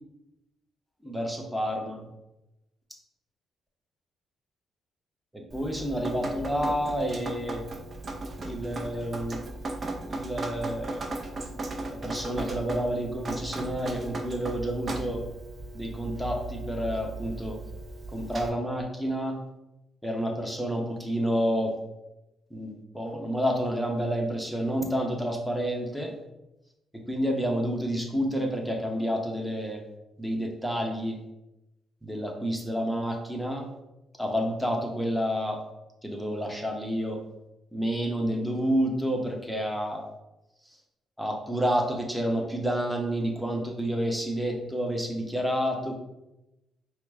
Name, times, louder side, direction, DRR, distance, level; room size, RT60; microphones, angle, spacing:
voice 1, 1.0-2.1 5.3-7.6 8.4-9.4 10.1-11.1 11.6-15.2 15.7-17.6 18.1-19.4 20.0-21.7 22.5-26.1 26.9-29.8 30.2-31.2 32.0-33.6 34.2-35.6 36.0-37.2 37.7-40.1 41.2-45.9, equal, ahead, 1 dB, 0.7 m, -29 dB
Drip, 5.5-18.5, right 2 dB, 40° right, 0.6 m, -37 dB
4.5 x 2.1 x 3.4 m, 0.93 s
cardioid pair, 90°, 0 cm